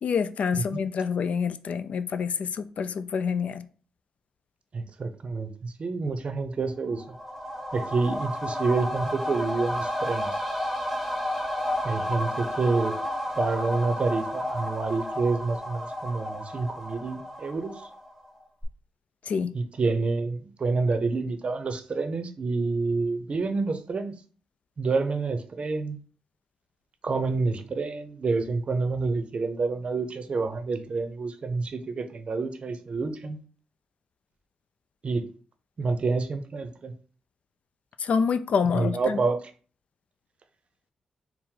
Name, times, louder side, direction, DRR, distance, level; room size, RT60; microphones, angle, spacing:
voice 1, 0.0-3.7 19.2-19.5 38.0-39.2, left 6 dB, 65° left, 0.3 m, -27 dB
voice 2, 0.5-0.8 4.7-7.2 7.7-10.4 11.8-13.0 13.4-17.8 19.5-24.1 24.8-26.0 27.0-33.4 35.0-35.3 35.8-36.9 38.7-39.4, right 3 dB, 50° right, 0.6 m, -28 dB
sound 1, 6.8-18.3 18.6-18.7, left 1 dB, ahead, 1.0 m, -32 dB
4.4 x 2.0 x 3.7 m
supercardioid pair, 50°, 2 cm